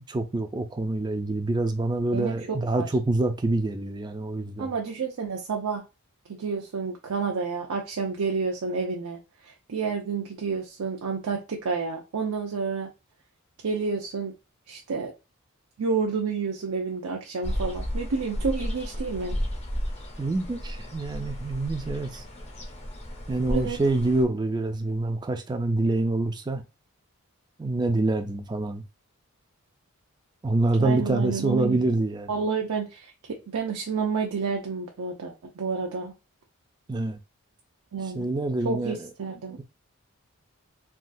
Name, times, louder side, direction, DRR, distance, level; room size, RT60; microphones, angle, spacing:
voice 1, 0.0-4.7 20.2-22.2 23.3-26.6 27.6-28.8 30.4-32.3 36.9-37.2 38.0-39.1, right 2 dB, 20° right, 0.3 m, -26 dB
voice 2, 2.1-2.9 4.6-5.8 6.4-12.9 13.6-14.3 14.7-15.1 15.8-19.4 23.5-23.8 30.8-31.8 32.3-36.1 37.9-38.3 38.6-39.6, right 5 dB, 80° right, 0.5 m, -30 dB
sound 1, 17.4-24.2, equal, 30° left, 0.6 m, -33 dB
3.5 x 2.3 x 2.5 m
head